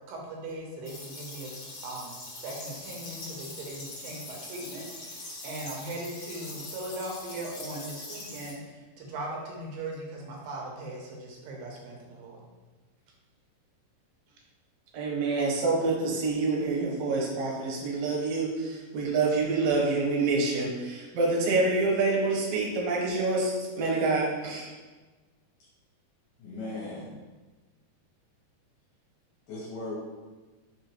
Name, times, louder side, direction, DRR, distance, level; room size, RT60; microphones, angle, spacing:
voice 1, 0.1-1.5 1.8-12.4, right 2 dB, 85° right, -1 dB, 2.6 m, -39 dB
Aspirin in water, 0.8-8.5, left 2 dB, 55° left, 1.7 m, -42 dB
voice 2, 14.9-24.7, right 3 dB, 65° right, -3 dB, 1.7 m, -27 dB
voice 3, 26.4-27.1 29.5-30.0, left 2 dB, 75° left, -6 dB, 2.2 m, -37 dB
5.5 x 3.0 x 3.0 m, 1.3 s
omnidirectional pair, 4.0 m